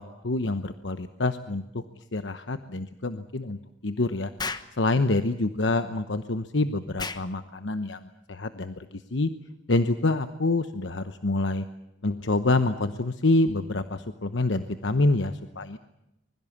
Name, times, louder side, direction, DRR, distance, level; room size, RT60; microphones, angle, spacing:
voice 1, 0.0-1.8 2.1-3.6 3.8-4.3 4.8-9.3 9.7-11.6 12.0-15.8, left 2 dB, 70° left, 10 dB, 1.0 m, -26 dB
Explosion, 4.4-4.7 7.0-7.3, left 4 dB, 20° left, 1.1 m, -33 dB
25.0 x 22.0 x 7.3 m, 0.90 s
head